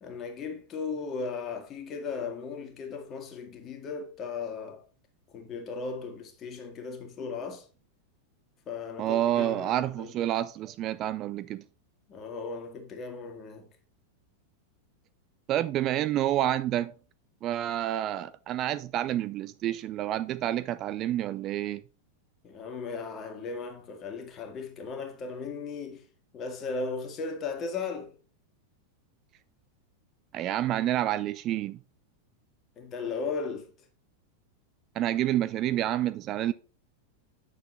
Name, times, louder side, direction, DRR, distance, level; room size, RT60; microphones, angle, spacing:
voice 1, 0.0-4.8 5.3-7.7 8.7-10.1 12.1-13.7 22.4-26.0 26.3-28.2 32.8-33.7, left 4 dB, 30° left, 1.9 m, -36 dB
voice 2, 9.0-11.6 15.5-16.9 17.4-21.8 30.3-31.8 35.0-36.5, right 12 dB, 35° right, 0.4 m, -28 dB
8.4 x 6.6 x 3.2 m
figure-of-eight pair, 90°, 0 cm